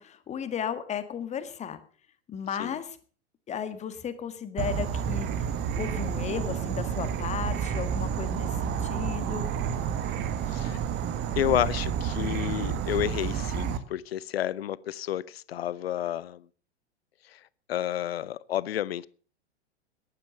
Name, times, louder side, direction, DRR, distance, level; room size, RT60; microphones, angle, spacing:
voice 1, 0.0-1.8 2.3-3.0 3.5-5.5 5.8-9.5, left 8 dB, 20° left, 1.7 m, -35 dB
Insect / Frog, 4.6-13.8, right 8 dB, 30° right, 1.4 m, -30 dB
voice 2, 10.5-10.8 11.4-16.5 17.3-17.4 17.7-19.1, left 12 dB, 60° left, 0.8 m, -30 dB
15.0 x 11.0 x 6.5 m
figure-of-eight pair, 95°, 34 cm